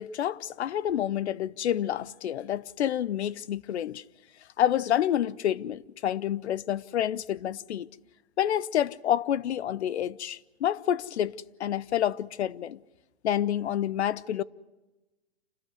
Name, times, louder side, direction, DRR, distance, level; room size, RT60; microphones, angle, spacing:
voice 1, 0.0-4.0 4.6-7.9 8.4-11.3 11.6-12.8 13.2-14.4, left 11 dB, 80° left, 0.9 m, -28 dB
28.0 x 13.0 x 9.5 m
hypercardioid pair, 150°, 33 cm